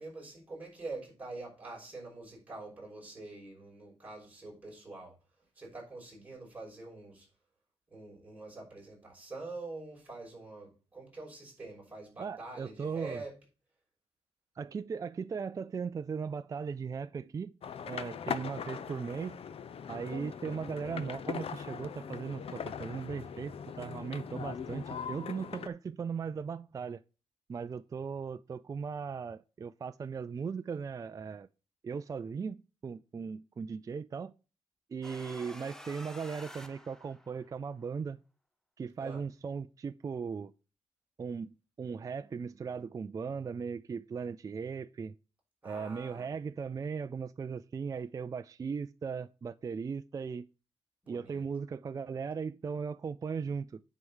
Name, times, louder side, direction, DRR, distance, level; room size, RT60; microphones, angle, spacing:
voice 1, 0.0-5.2 5.5-7.3 7.9-13.3 39.0-39.2 45.6-46.3 51.0-51.4, right 2 dB, 15° right, 5.8 m, -45 dB
voice 2, 12.2-13.2 14.6-17.6 17.8-19.4 19.9-27.0 27.5-31.5 31.8-34.3 34.9-38.2 38.8-40.5 41.2-45.1 45.6-50.5 51.1-53.8, right 6 dB, 30° right, 0.3 m, -38 dB
sound 1, 17.6-25.7, left 7 dB, 60° left, 0.7 m, -40 dB
sound 2, 35.0-37.6, equal, 5° left, 0.8 m, -49 dB
9.7 x 4.5 x 5.5 m
wide cardioid pair, 150°, 11 cm